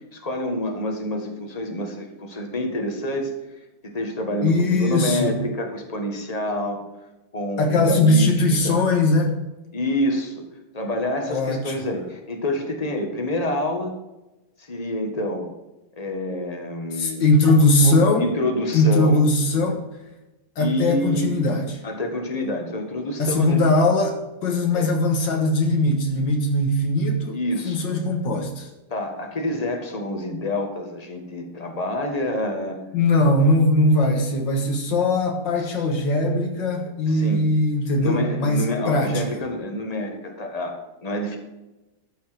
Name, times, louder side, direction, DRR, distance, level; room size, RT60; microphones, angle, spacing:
voice 1, 0.1-3.3 3.8-6.8 7.3-8.8 9.7-10.4 10.7-13.9 14.6-15.5 16.0-17.2 17.8-19.2 20.6-21.3 21.8-23.6 24.7-24.9 27.3-27.9 28.9-32.8 35.6-35.7 37.1-37.5 38.0-41.4, left 1 dB, 20° left, 3 dB, 1.6 m, -27 dB
voice 2, 4.4-5.3 7.6-9.4 11.3-11.8 16.9-18.3 18.7-19.8 20.6-21.7 23.2-27.4 27.6-28.7 32.9-39.2, left 2 dB, 85° left, 3 dB, 2.2 m, -20 dB
13.0 x 5.7 x 6.1 m, 1.0 s
omnidirectional pair, 1.9 m